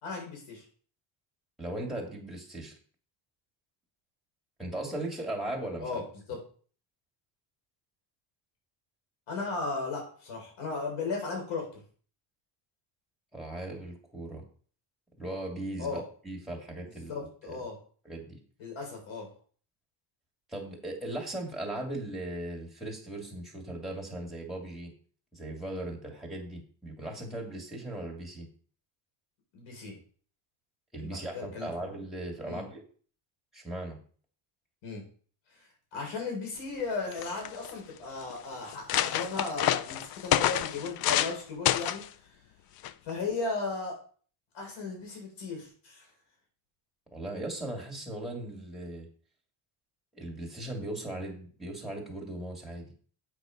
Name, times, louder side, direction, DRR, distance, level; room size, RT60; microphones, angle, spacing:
voice 1, 0.0-0.6 5.8-6.4 9.3-11.7 15.8-16.0 17.1-17.8 18.6-19.3 29.5-29.9 31.0-31.7 32.4-32.6 34.8-35.0 35.9-42.0 43.0-44.0 44.5-46.1, left 3 dB, 80° left, 1 dB, 4.3 m, -36 dB
voice 2, 1.6-2.7 4.6-6.0 13.3-14.4 15.2-17.6 18.0-18.4 20.5-24.9 25.3-28.5 30.9-32.8 33.5-34.0 47.1-49.1 50.1-52.9, right 1 dB, ahead, -1 dB, 2.7 m, -38 dB
sound 1, 36.8-36.9 37.1-37.7 38.3-38.4 38.7-41.4 41.7-42.1 42.8-43.1, left 12 dB, 50° left, 0.5 m, -28 dB
8.5 x 5.0 x 5.2 m, 0.43 s
cardioid pair, 135°, 46 cm